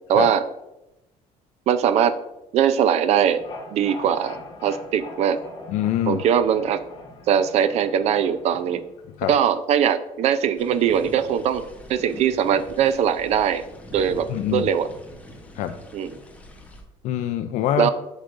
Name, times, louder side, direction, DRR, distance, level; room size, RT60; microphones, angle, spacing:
voice 1, 0.1-0.4 1.7-2.2 2.5-3.4 3.7-5.4 6.1-6.8 7.3-8.8 9.3-11.6 11.9-13.6 13.9-14.9 15.9-16.1 17.8-17.9, right 8 dB, 55° right, 13 dB, 0.5 m, -21 dB
sound 1, 3.2-9.2, left 3 dB, 35° left, 2.4 m, -42 dB
voice 2, 5.7-6.2 9.2-9.3 14.3-14.7 15.5-15.8 17.0-17.9, left 11 dB, 65° left, 8 dB, 0.4 m, -24 dB
sound 2, 10.6-16.8, left 1 dB, 10° left, 0.9 m, -43 dB
8.0 x 6.3 x 2.5 m, 0.93 s
cardioid pair, 135°, 13 cm